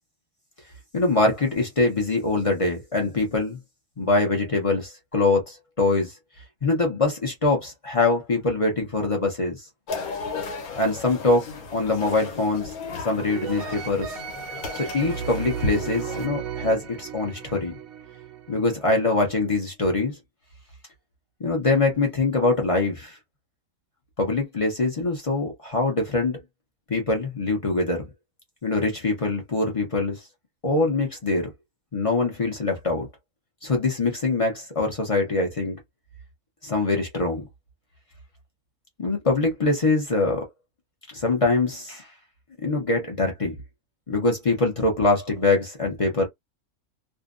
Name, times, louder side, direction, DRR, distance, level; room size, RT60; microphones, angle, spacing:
voice 1, 0.9-3.6 4.0-6.1 6.6-9.6 10.8-12.7 13.0-14.2 14.7-17.7 18.5-20.1 21.4-23.2 24.2-26.4 26.9-28.1 28.6-30.2 30.6-31.5 31.9-33.1 33.6-35.8 36.6-37.5 39.0-40.5 41.1-42.1 42.6-43.5 44.1-46.2, left 3 dB, 40° left, 0.5 m, -23 dB
sound 1, 9.9-16.3, left 3 dB, 85° left, 1.2 m, -34 dB
sound 2, 13.3-19.2, right 8 dB, 75° right, 1.0 m, -35 dB
2.6 x 2.0 x 2.4 m
omnidirectional pair, 1.5 m